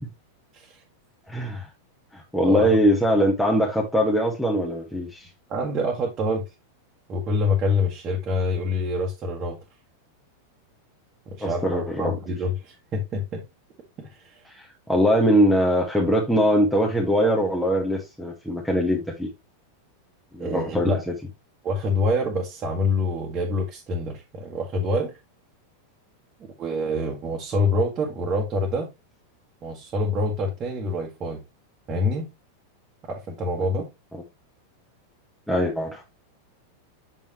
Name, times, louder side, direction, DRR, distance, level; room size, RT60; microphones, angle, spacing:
voice 1, 1.3-1.7 2.1-5.3 11.4-12.1 14.5-19.3 20.3-21.1 35.5-36.0, equal, ahead, 1.4 m, -22 dB
voice 2, 2.4-2.8 5.5-6.4 7.1-9.6 11.3-13.4 14.0-14.4 20.4-21.0 21.6-25.1 26.4-28.9 29.6-31.4 31.9-32.3 33.1-33.9, left 1 dB, 30° right, 1.6 m, -26 dB
7.2 x 5.4 x 3.1 m
figure-of-eight pair, 90°, 0 cm